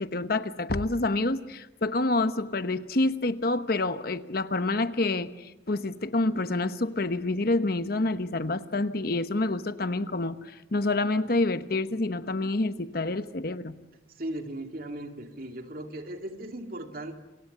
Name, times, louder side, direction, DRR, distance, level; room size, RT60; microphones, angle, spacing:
voice 1, 0.0-13.8, left 2 dB, 55° left, 11 dB, 1.1 m, -28 dB
voice 2, 14.1-17.2, right 1 dB, 55° right, 5 dB, 2.5 m, -37 dB
28.5 x 26.5 x 6.8 m, 0.99 s
head